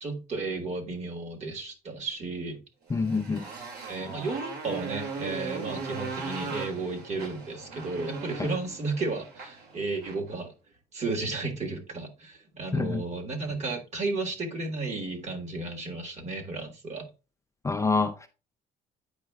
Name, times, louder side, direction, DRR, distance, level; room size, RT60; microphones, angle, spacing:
voice 1, 0.0-2.6 3.4-10.5 10.9-17.1, right 3 dB, 40° right, 1.4 m, -33 dB
voice 2, 2.9-3.4 12.7-13.0 17.6-18.3, left 4 dB, 15° left, 0.4 m, -26 dB
Motorcycle, 2.9-10.3, right 4 dB, 70° right, 2.1 m, -38 dB
8.6 x 5.1 x 2.2 m
cardioid pair, 110°, 17 cm